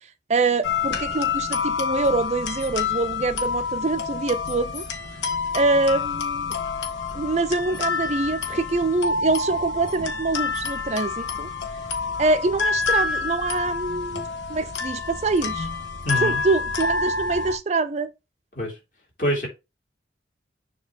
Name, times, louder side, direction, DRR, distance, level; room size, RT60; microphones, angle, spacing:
voice 1, 0.3-4.8 5.5-6.6 7.1-11.5 12.2-15.7 16.2-18.1, right 3 dB, 35° right, 0.4 m, -25 dB
sound 1, 0.6-17.6, left 5 dB, 85° left, 1.3 m, -28 dB
voice 2, 16.0-16.4 18.5-18.8 19.2-19.5, equal, 45° left, 2.9 m, -25 dB
7.2 x 2.9 x 4.9 m
head